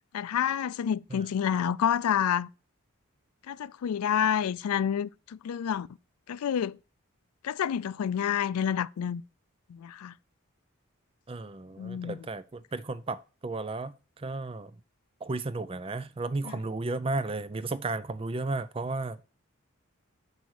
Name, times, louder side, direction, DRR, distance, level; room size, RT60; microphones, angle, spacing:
voice 1, 0.1-2.5 3.5-5.9 6.3-6.8 7.4-9.2 9.7-10.1 11.8-12.2 16.4-16.6, left 8 dB, 85° left, 0.3 m, -28 dB
voice 2, 11.3-14.7 15.2-19.2, right 3 dB, 25° right, 0.4 m, -34 dB
8.0 x 5.2 x 4.7 m
head